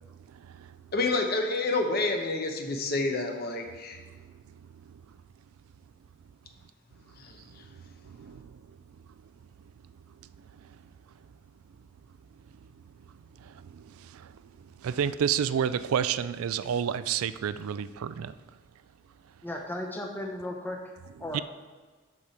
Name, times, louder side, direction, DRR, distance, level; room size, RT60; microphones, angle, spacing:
voice 1, 0.1-0.8 4.2-4.3 4.9-5.0 7.5-8.6 10.6-10.8 13.4-18.4 21.3-21.4, right 8 dB, 85° right, 0.4 m, -31 dB
voice 2, 0.9-4.0 7.2-7.6, left 2 dB, 45° left, 0.9 m, -29 dB
voice 3, 19.4-20.8 21.2-21.4, left 1 dB, 10° left, 0.9 m, -35 dB
8.4 x 6.5 x 4.3 m
head